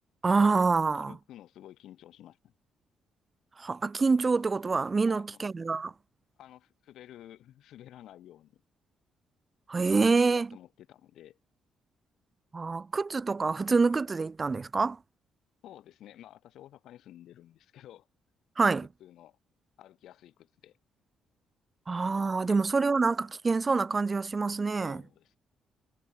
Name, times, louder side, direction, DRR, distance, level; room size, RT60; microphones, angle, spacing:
voice 1, 0.2-1.1 3.6-5.9 9.7-10.5 12.5-15.0 18.6-18.8 21.9-25.0, right 4 dB, 30° right, 0.5 m, -26 dB
voice 2, 0.9-2.5 5.0-5.4 6.4-8.6 10.1-11.4 15.6-18.1 18.7-19.4 19.8-20.8 22.2-22.6 24.7-25.4, left 12 dB, 80° left, 1.9 m, -52 dB
cardioid pair, 90°, 0 cm